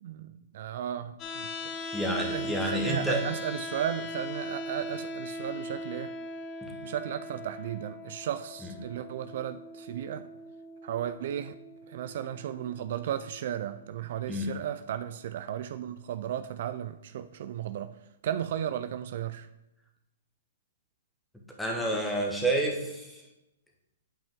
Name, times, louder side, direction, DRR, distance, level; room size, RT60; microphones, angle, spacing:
voice 1, 0.0-6.1 6.8-10.3 10.8-11.5 11.9-17.9 18.2-19.5, right 10 dB, 55° right, 12 dB, 0.4 m, -35 dB
sound 1, 1.2-13.2, left 1 dB, 25° left, 0.9 m, -40 dB
voice 2, 1.9-3.2 14.3-14.5 21.6-23.2, right 1 dB, ahead, 0 dB, 1.3 m, -29 dB
8.6 x 5.4 x 3.6 m, 0.93 s
hypercardioid pair, 145°, 0 cm